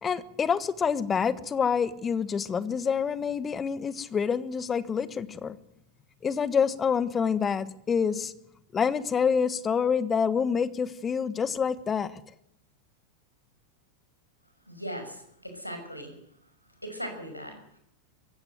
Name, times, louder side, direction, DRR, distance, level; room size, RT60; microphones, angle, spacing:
voice 1, 0.0-5.6 6.2-8.3 8.7-12.2, left 6 dB, 20° left, 1.4 m, -27 dB
voice 2, 14.7-16.1 16.8-17.8, equal, 90° left, 6.0 m, -39 dB
23.0 x 16.5 x 7.9 m
figure-of-eight pair, 90°, 0 cm